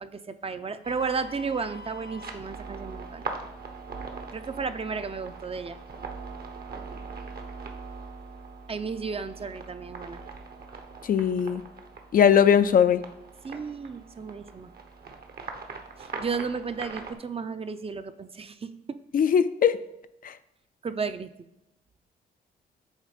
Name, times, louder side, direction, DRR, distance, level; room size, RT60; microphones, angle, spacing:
voice 1, 0.0-3.2 4.3-5.8 8.7-10.2 13.4-14.7 16.0-18.7 20.8-21.3, right 5 dB, 30° right, 10 dB, 0.5 m, -33 dB
sound 1, 0.8-17.1, right 4 dB, 55° right, 1.0 m, -41 dB
voice 2, 11.0-11.6 12.1-13.0 19.1-19.8 20.2-20.3, left 8 dB, 50° left, 12 dB, 0.4 m, -20 dB
7.3 x 3.3 x 5.0 m, 0.86 s
supercardioid pair, 60°, 19 cm